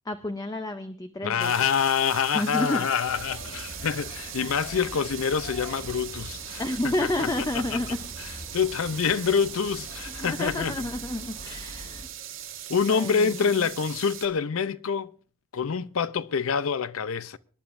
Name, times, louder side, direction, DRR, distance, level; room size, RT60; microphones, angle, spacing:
voice 1, 0.0-1.5 2.3-2.9 6.6-8.0 10.1-12.1 12.9-13.7, left 1 dB, 15° left, 0.6 m, -30 dB
voice 2, 1.2-7.3 8.5-10.7 12.7-15.1 15.5-17.4, left 6 dB, 75° left, 0.5 m, -26 dB
sound 1, 1.4-14.3, right 10 dB, 60° right, 1.6 m, -40 dB
sound 2, 3.0-12.1, left 1 dB, 50° left, 2.6 m, -44 dB
25.5 x 10.5 x 2.6 m
head